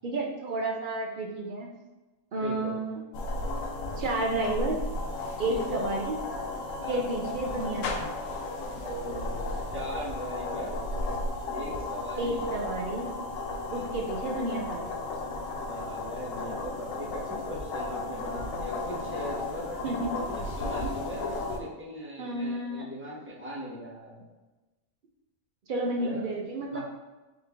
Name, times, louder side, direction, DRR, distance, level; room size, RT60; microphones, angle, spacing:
voice 1, 0.0-1.7 2.3-3.0 4.0-4.8 5.4-6.2 6.9-8.1 12.2-13.1 13.7-14.9 19.8-20.1 20.8-20.9 22.2-22.9 25.7-26.8, right 2 dB, 55° right, 0 dB, 0.5 m, -31 dB
voice 2, 2.4-2.8 5.5-5.9 6.8-7.1 8.8-10.8 11.5-12.5 13.6-14.1 15.6-24.3 26.0-26.2 26.7-26.8, equal, 10° right, -7 dB, 0.8 m, -39 dB
sound 1, 3.1-21.6, left 2 dB, 75° left, 0.9 m, -34 dB
3.9 x 3.3 x 3.4 m, 1.2 s
omnidirectional pair, 1.4 m